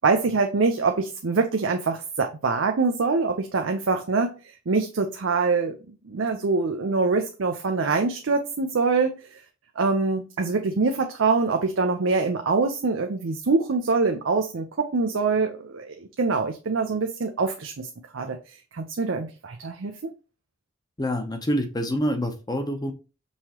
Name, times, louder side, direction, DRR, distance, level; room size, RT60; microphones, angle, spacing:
voice 1, 0.0-4.3 4.7-9.2 9.8-17.9 18.1-18.4 18.7-20.1, right 4 dB, 80° right, 0.6 m, -24 dB
voice 2, 21.0-22.9, equal, 20° left, 0.7 m, -26 dB
5.5 x 3.0 x 2.8 m
head